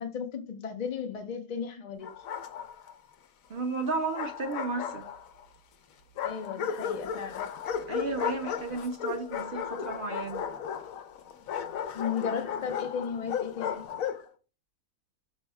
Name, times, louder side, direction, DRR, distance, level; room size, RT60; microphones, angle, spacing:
voice 1, 0.0-2.2 6.2-7.5 11.9-13.8, left 6 dB, 60° left, 0.4 m, -35 dB
Bark, 2.0-2.9 3.8-5.4 6.2-14.3, left 7 dB, 85° left, 1.0 m, -35 dB
voice 2, 3.5-5.0 7.9-10.4, right 3 dB, 50° right, 0.6 m, -33 dB
5.4 x 2.1 x 4.6 m
omnidirectional pair, 1.4 m